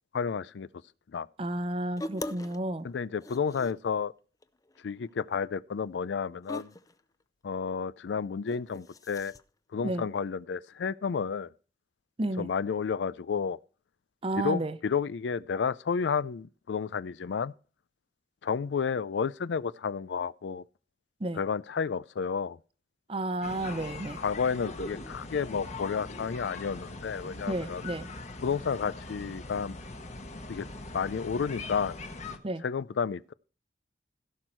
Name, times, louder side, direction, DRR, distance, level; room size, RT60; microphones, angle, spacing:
voice 1, 0.1-0.7 1.1-1.3 2.8-4.1 4.8-6.7 7.4-9.3 9.7-11.5 12.4-13.6 14.4-17.5 18.4-20.6 21.3-22.6 24.2-27.8 28.4-29.8 30.5-30.7 30.9-32.0 32.6-33.3, left 6 dB, 85° left, 0.4 m, -31 dB
voice 2, 1.4-2.9 9.8-10.1 12.2-12.5 14.2-14.8 21.2-21.4 23.1-24.2 27.5-28.1 32.4-32.6, right 1 dB, 30° right, 0.7 m, -32 dB
sound 1, 2.0-2.6 2.9-3.9 4.4-4.8 5.1-5.2 6.4-6.9 8.4-9.4, left 1 dB, 20° left, 0.5 m, -40 dB
sound 2, 23.4-32.4, left 2 dB, 40° left, 1.2 m, -41 dB
16.0 x 6.3 x 4.5 m
head